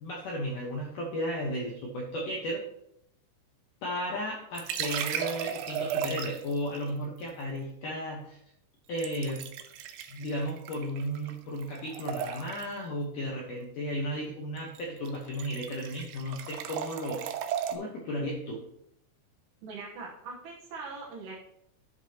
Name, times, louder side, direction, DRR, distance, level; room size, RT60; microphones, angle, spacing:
voice 1, 0.0-2.6 3.8-8.4 8.9-9.4 10.1-17.2 17.7-18.6, equal, 90° left, -1 dB, 1.8 m, -34 dB
sound 1, 4.5-6.6 9.0-11.3 11.6-12.8 14.6-14.8 15.1-17.8, right 8 dB, 90° right, 2.5 m, -35 dB
voice 2, 19.6-21.4, right 4 dB, 70° right, -2 dB, 2.9 m, -41 dB
14.0 x 5.2 x 2.8 m, 0.76 s
omnidirectional pair, 5.5 m